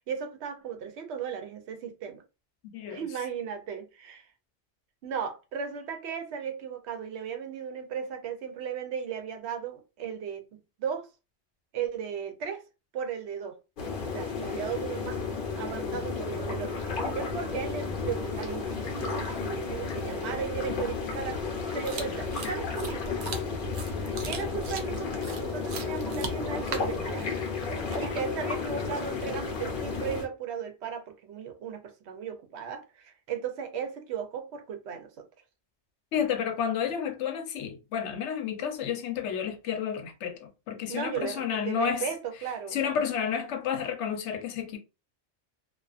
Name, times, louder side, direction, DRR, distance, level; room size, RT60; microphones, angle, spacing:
voice 1, 0.1-2.2 2.9-4.3 5.0-11.1 11.7-12.6 12.9-13.6 14.1-15.2 15.5-23.2 24.2-27.3 28.0-35.3 40.9-42.8, right 7 dB, 75° right, 0.8 m, -36 dB
voice 2, 2.7-3.0 36.1-42.0 42.7-44.8, left 8 dB, 85° left, 0.9 m, -31 dB
sound 1, 13.8-30.3, left 4 dB, 55° left, 0.8 m, -33 dB
sound 2, 21.8-28.3, right 4 dB, 60° right, 0.5 m, -40 dB
2.4 x 2.3 x 2.4 m
omnidirectional pair, 1.2 m